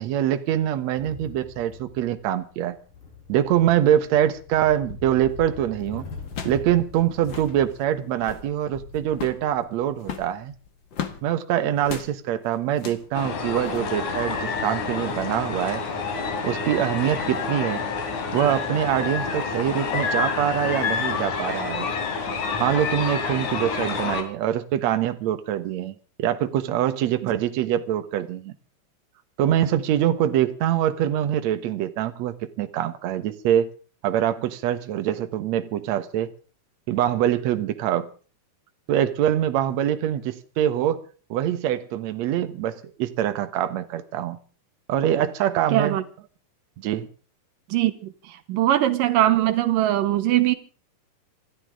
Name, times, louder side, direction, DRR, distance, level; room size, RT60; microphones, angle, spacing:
voice 1, 0.0-2.8 3.3-6.1 6.4-10.5 11.2-15.8 16.4-17.8 18.3-21.9 22.6-28.5 29.4-33.7 34.0-36.3 36.9-38.1 38.9-41.0 41.3-44.4 44.9-46.0 46.8-47.1, right 11 dB, 65° right, 2.2 m, -24 dB
sound 1, 1.0-11.2, left 5 dB, 80° left, 5.8 m, -42 dB
sound 2, 5.3-5.6 6.3-6.7 6.9-7.0 7.2-7.6 8.1-8.5 9.1-9.5 10.0-11.2 11.8-12.1 12.7-13.1 13.6-13.8, left 7 dB, 45° left, 1.9 m, -35 dB
sound 3, 13.1-24.2, left 5 dB, 65° left, 4.0 m, -28 dB
voice 2, 45.7-46.0 47.7-50.6, right 13 dB, 85° right, 2.7 m, -21 dB
27.0 x 13.0 x 3.7 m
omnidirectional pair, 3.9 m